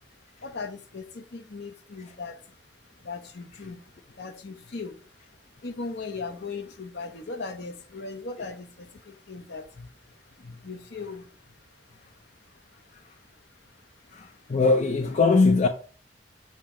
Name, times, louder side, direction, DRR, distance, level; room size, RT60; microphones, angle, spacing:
voice 1, 0.0-14.6, left 4 dB, 65° left, 0.8 m, -40 dB
voice 2, 14.1-15.7, left 3 dB, 40° left, 0.4 m, -21 dB
7.3 x 2.8 x 4.9 m
head